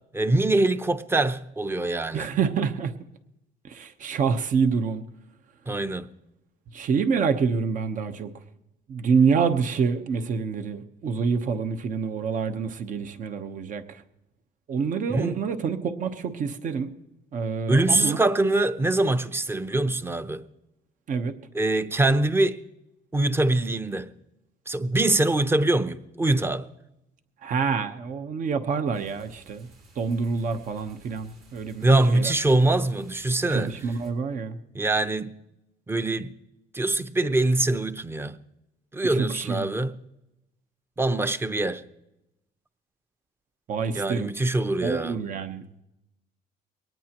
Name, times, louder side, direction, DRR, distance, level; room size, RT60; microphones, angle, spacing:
voice 1, 0.1-2.3 5.7-6.1 15.1-15.4 17.7-20.4 21.5-22.6 23.1-24.1 24.7-26.7 31.8-33.7 34.7-35.4 35.9-36.3 36.7-38.3 38.9-39.9 41.0-41.8 43.9-45.1, right 2 dB, 15° right, 0.8 m, -23 dB
voice 2, 2.1-2.9 3.6-5.0 6.7-8.3 8.9-14.0 14.7-16.9 17.3-18.2 21.1-21.4 27.4-29.7 30.0-32.3 33.5-34.6 39.2-39.7 43.7-44.3 44.8-45.7, right 5 dB, 50° right, 1.1 m, -27 dB
sound 1, 28.9-34.1, right 3 dB, 80° right, 6.6 m, -54 dB
22.0 x 18.5 x 3.0 m
cardioid pair, 110°, 17 cm